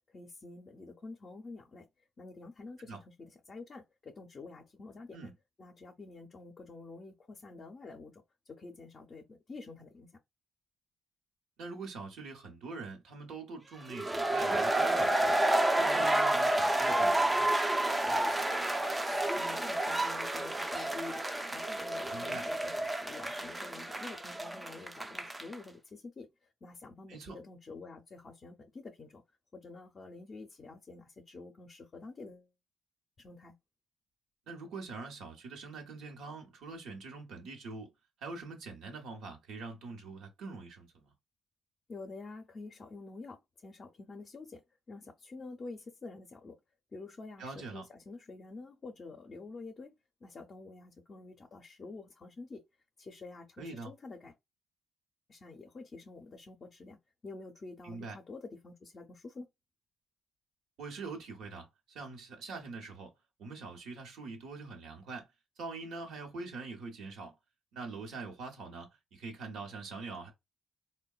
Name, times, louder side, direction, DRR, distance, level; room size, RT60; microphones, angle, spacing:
voice 1, 0.1-1.9 2.2-5.3 5.6-10.1 19.3-21.3 21.5-26.3 26.6-29.2 29.5-32.5 33.2-33.5 41.9-44.6 44.9-46.6 46.9-49.9 50.2-52.6 53.0-54.3 55.3-59.5, left 3 dB, 40° left, 0.5 m, -48 dB
voice 2, 11.6-15.4 15.8-17.5 22.1-22.5 27.1-27.4 34.5-37.9 38.2-41.1 47.4-47.9 53.6-53.9 57.8-58.2 60.8-63.1 63.4-65.3 65.6-67.3 67.7-70.3, right 3 dB, 80° right, 0.9 m, -44 dB
sound 1, 13.9-25.6, right 1 dB, 15° right, 0.4 m, -30 dB
3.6 x 2.2 x 2.3 m
cardioid pair, 90°, 0 cm